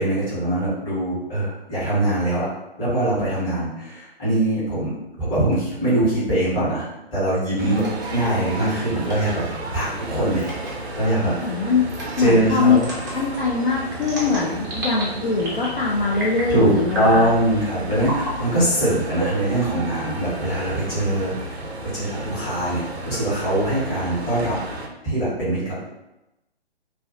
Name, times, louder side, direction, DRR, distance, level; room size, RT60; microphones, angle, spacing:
voice 1, 0.0-2.5 2.8-7.8 8.1-9.4 9.7-10.4 11.0-11.3 12.2-12.9 16.5-21.3 21.8-24.6 25.0-25.8, right 1 dB, 20° left, -10 dB, 1.0 m, -22 dB
sound 1, 7.6-24.9, right 2 dB, 90° right, 0.5 m, -33 dB
sound 2, 7.8-8.1 9.0-9.3 10.4-10.7 11.9-12.2 12.8-13.1 14.0-15.0 15.4-15.8 16.1-16.5 16.9-17.3 18.0-18.3 19.1-20.0, right 1 dB, 20° right, 0.4 m, -31 dB
voice 2, 11.4-11.9 12.2-12.8 13.1-17.3, left 4 dB, 55° left, -4 dB, 0.4 m, -22 dB
2.3 x 2.0 x 2.5 m, 0.92 s
figure-of-eight pair, 130°, 31 cm